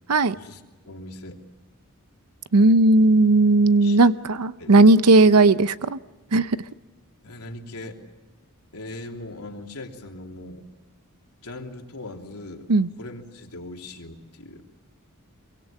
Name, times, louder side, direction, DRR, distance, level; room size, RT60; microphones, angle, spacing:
voice 1, 0.3-1.4 3.8-4.0 4.6-4.8 7.2-8.0 8.7-10.7 11.4-12.7 13.0-14.6, left 2 dB, 85° left, 3.1 m, -39 dB
voice 2, 2.5-6.0 6.3-6.6 12.7-12.9, right 2 dB, 90° right, 0.7 m, -16 dB
26.5 x 23.5 x 7.3 m
head